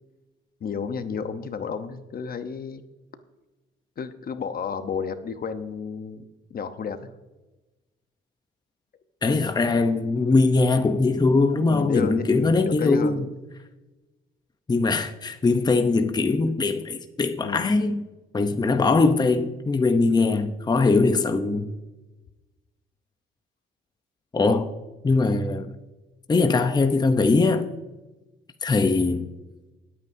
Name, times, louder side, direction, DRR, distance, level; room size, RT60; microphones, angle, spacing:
voice 1, 0.6-2.8 4.0-6.2 6.5-7.1 11.7-13.2 17.4-17.8, left 6 dB, 50° left, 0.9 m, -31 dB
voice 2, 9.2-13.3 14.7-18.0 18.3-21.7 24.3-24.7 25.0-25.7 26.3-27.7 28.6-29.3, left 3 dB, 20° left, 0.7 m, -21 dB
20.0 x 8.7 x 2.7 m
cardioid pair, 90°, 20 cm